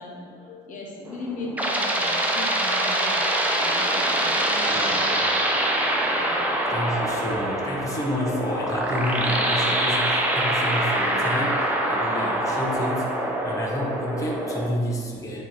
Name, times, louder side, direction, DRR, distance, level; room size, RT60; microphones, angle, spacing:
voice 1, 0.0-5.1 6.0-6.4, left 2 dB, 50° left, -1 dB, 1.0 m, -38 dB
sound 1, 1.1-14.7, right 1 dB, 10° right, 0.7 m, -24 dB
voice 2, 4.7-5.0 6.7-13.1 13.4-15.4, left 1 dB, 20° left, -3 dB, 1.0 m, -29 dB
8.4 x 3.1 x 4.1 m, 2.4 s
cardioid pair, 110°, 17 cm